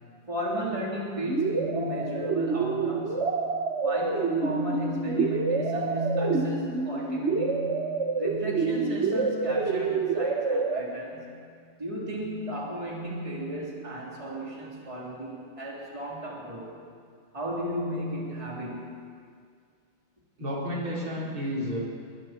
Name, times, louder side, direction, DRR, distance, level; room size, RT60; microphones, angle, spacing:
voice 1, 0.3-3.4 3.8-7.8 8.2-11.3 11.8-16.8 17.3-18.9, equal, 15° right, -4 dB, 3.9 m, -34 dB
sound 1, 1.3-10.8, right 4 dB, 35° right, 1.4 m, -28 dB
voice 2, 20.4-21.8, equal, 75° right, -5 dB, 5.8 m, -31 dB
27.5 x 23.5 x 4.6 m, 2.2 s
omnidirectional pair, 2.4 m